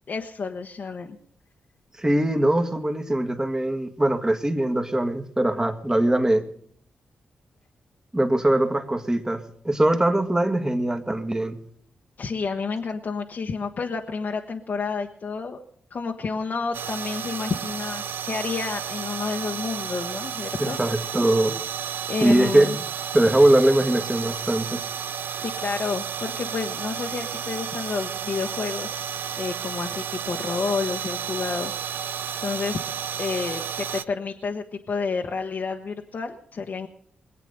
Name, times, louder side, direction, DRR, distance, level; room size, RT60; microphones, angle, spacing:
voice 1, 0.1-1.2 12.2-15.6 15.9-20.8 22.1-22.8 25.4-29.0 29.4-32.0 32.4-36.9, left 4 dB, 55° left, 2 dB, 1.1 m, -30 dB
voice 2, 2.0-6.4 8.1-11.6 20.6-21.6 22.2-22.8 23.1-24.8, right 1 dB, 15° right, 6 dB, 1.9 m, -21 dB
sound 1, 16.7-34.0, right 8 dB, 75° right, 0.5 m, -32 dB
21.0 x 8.3 x 6.6 m, 0.64 s
supercardioid pair, 50°, 4 cm